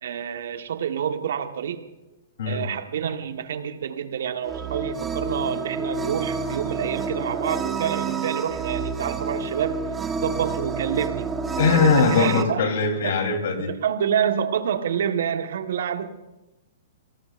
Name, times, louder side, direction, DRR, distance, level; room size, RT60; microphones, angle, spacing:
voice 1, 0.0-1.9 2.4-9.9 10.2-11.3 11.7-12.6 13.0-13.1 13.8-16.1, right 8 dB, 70° right, 6 dB, 1.5 m, -27 dB
sound 1, 4.4-12.4, right 5 dB, 15° right, 1.6 m, -29 dB
voice 2, 11.6-13.7, left 5 dB, 70° left, 4 dB, 3.7 m, -21 dB
29.0 x 18.0 x 2.6 m, 1.0 s
hypercardioid pair, 130°, 0 cm